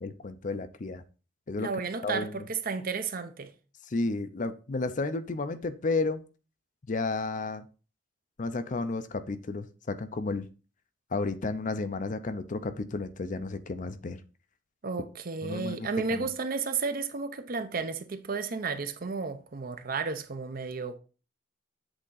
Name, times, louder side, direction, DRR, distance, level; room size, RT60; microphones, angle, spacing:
voice 1, 0.0-1.0 1.5-1.7 2.0-2.4 3.9-6.2 6.9-7.7 8.4-10.5 11.1-14.2 15.4-16.3, left 3 dB, 45° left, 0.5 m, -32 dB
voice 2, 1.6-3.5 14.8-21.0, right 4 dB, 50° right, 0.7 m, -33 dB
7.9 x 3.6 x 4.0 m
head